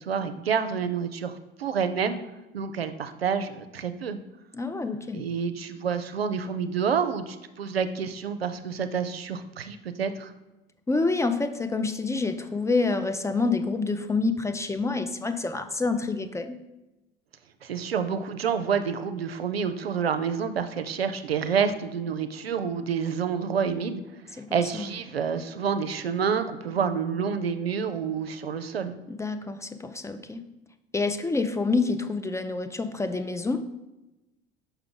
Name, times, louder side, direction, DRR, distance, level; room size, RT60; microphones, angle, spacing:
voice 1, 0.0-2.2 2.5-4.2 5.1-10.3 17.6-24.0 24.3-29.0, right 6 dB, 90° right, 9 dB, 0.5 m, -28 dB
voice 2, 4.5-5.2 10.9-16.6 24.4-24.9 29.1-30.4 30.9-33.6, left 3 dB, 10° left, 9 dB, 0.4 m, -27 dB
5.7 x 5.6 x 3.7 m, 1.0 s
figure-of-eight pair, 65°, 29 cm